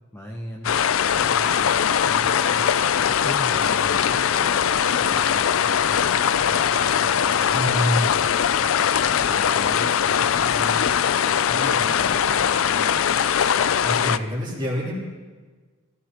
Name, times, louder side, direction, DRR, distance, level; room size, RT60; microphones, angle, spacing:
voice 1, 0.1-0.7 1.0-1.7 2.1-4.7 5.0-8.1 8.7-11.2 11.5-13.2, equal, 10° left, 0 dB, 0.8 m, -38 dB
sound 1, 0.6-14.2, left 8 dB, 65° left, 0.4 m, -21 dB
voice 2, 7.5-8.4 13.8-14.9, equal, 20° right, -4 dB, 3.2 m, -26 dB
21.0 x 14.5 x 3.0 m, 1.4 s
head